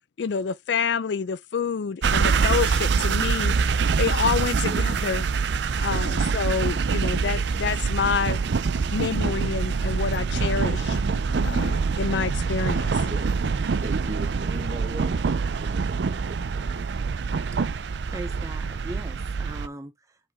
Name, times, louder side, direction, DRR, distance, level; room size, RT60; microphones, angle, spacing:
voice 1, 0.2-3.5 4.0-5.3 5.8-8.4 8.9-13.1, left 6 dB, 70° left, 0.4 m, -28 dB
sound 1, 2.0-19.7, right 5 dB, 70° right, 0.5 m, -25 dB
voice 2, 13.1-13.5 13.8-15.1 15.5-16.9, right 2 dB, 40° right, 1.4 m, -39 dB
voice 3, 18.1-20.2, right 1 dB, 15° right, 0.6 m, -39 dB
5.2 x 5.0 x 3.6 m
head